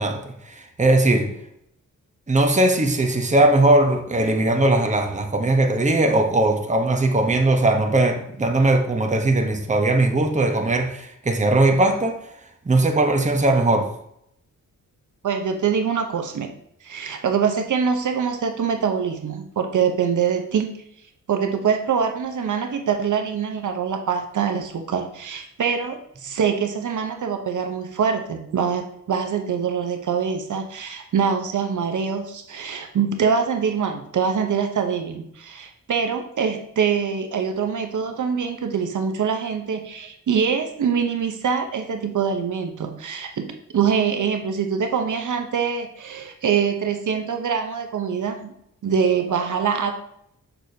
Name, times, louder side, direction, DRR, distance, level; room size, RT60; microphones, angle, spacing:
voice 1, 0.0-1.3 2.3-12.2 12.6-13.9, right 2 dB, 20° right, 4 dB, 0.9 m, -19 dB
voice 2, 15.2-16.5 16.8-20.7 21.3-43.5 43.7-48.5 48.8-49.9, right 6 dB, 65° right, 5 dB, 0.8 m, -24 dB
6.8 x 6.0 x 2.7 m, 0.74 s
cardioid pair, 90°, 32 cm